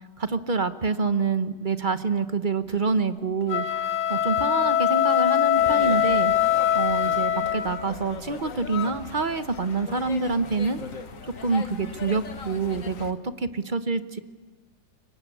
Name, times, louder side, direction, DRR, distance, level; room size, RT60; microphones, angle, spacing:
voice 1, 0.2-10.8 11.4-14.2, right 4 dB, 35° right, 11 dB, 1.0 m, -27 dB
sound 1, 3.4-8.0, left 10 dB, 85° left, 1.7 m, -22 dB
sound 2, 5.6-13.1, left 5 dB, 50° left, 1.7 m, -39 dB
28.0 x 23.5 x 8.5 m, 1.3 s
omnidirectional pair, 1.8 m